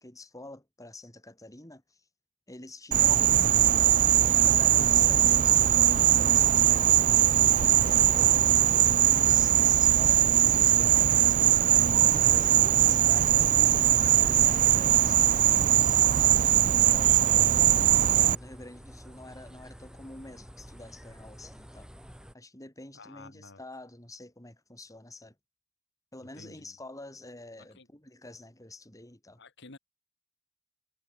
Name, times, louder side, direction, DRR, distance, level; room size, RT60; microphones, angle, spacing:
voice 1, 0.0-2.0 2.5-3.5 4.3-7.0 7.7-11.5 12.1-17.5 18.3-21.9 22.3-25.4 26.1-29.4, left 2 dB, 15° left, 3.4 m, -47 dB
Insect, 2.9-18.3, right 11 dB, 40° right, 0.4 m, -21 dB
sound 1, 7.2-22.3, equal, 5° right, 6.4 m, -49 dB
voice 2, 8.0-8.4 22.9-23.6 26.2-26.8 27.6-27.9 29.4-29.8, left 2 dB, 60° left, 2.7 m, -51 dB
head